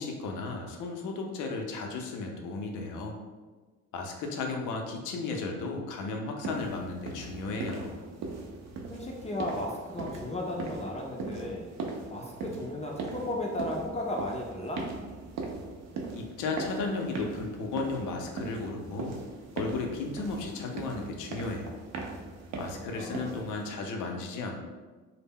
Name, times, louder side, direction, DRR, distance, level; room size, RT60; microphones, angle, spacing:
voice 1, 0.0-3.1 3.9-8.0 16.1-19.2 19.6-21.8 22.6-24.6, left 3 dB, 85° left, 2 dB, 0.5 m, -34 dB
sound 1, 6.4-23.7, right 3 dB, 60° right, 0.5 m, -40 dB
voice 2, 8.9-11.7 12.1-14.8 22.9-23.3, left 1 dB, 20° left, -1 dB, 0.4 m, -35 dB
2.0 x 2.0 x 3.5 m, 1.3 s
cardioid pair, 90°, 30 cm